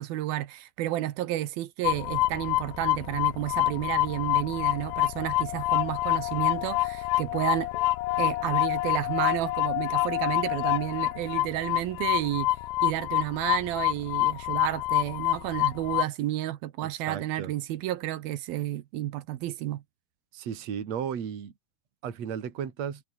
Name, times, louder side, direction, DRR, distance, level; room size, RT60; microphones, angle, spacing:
voice 1, 0.0-7.7 8.2-12.5 12.8-19.8, right 14 dB, 70° right, 2.7 m, -31 dB
sound 1, 1.8-16.0, left 17 dB, 75° left, 2.3 m, -27 dB
voice 2, 16.8-17.5 20.3-21.5 22.0-23.0, right 8 dB, 45° right, 3.5 m, -34 dB
omnidirectional pair, 4.9 m